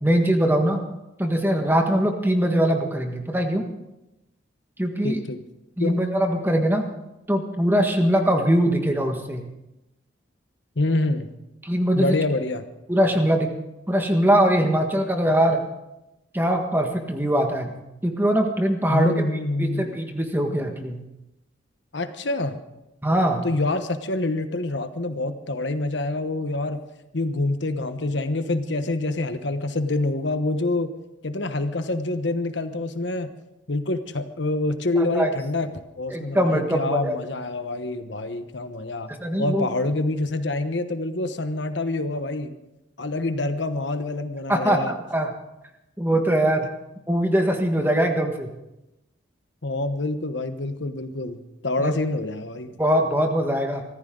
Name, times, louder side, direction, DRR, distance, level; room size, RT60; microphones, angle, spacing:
voice 1, 0.0-0.8 1.2-3.7 4.8-5.2 5.8-6.8 7.3-9.4 11.6-12.2 12.9-13.5 13.9-15.6 16.3-19.2 19.6-21.0 23.0-23.5 35.0-35.3 36.1-37.2 39.2-39.7 44.5-45.3 46.0-46.7 47.1-48.5 51.8-51.9 52.8-53.8, right 1 dB, 10° right, 3 dB, 1.6 m, -22 dB
voice 2, 5.0-5.4 5.8-6.0 10.8-11.3 11.9-12.6 18.9-19.9 21.9-22.6 23.4-26.8 27.1-30.9 31.2-33.3 33.7-35.7 36.0-39.1 39.4-42.5 43.0-44.9 49.6-52.8, left 2 dB, 70° left, 9 dB, 1.2 m, -26 dB
24.0 x 14.5 x 3.9 m, 0.93 s
head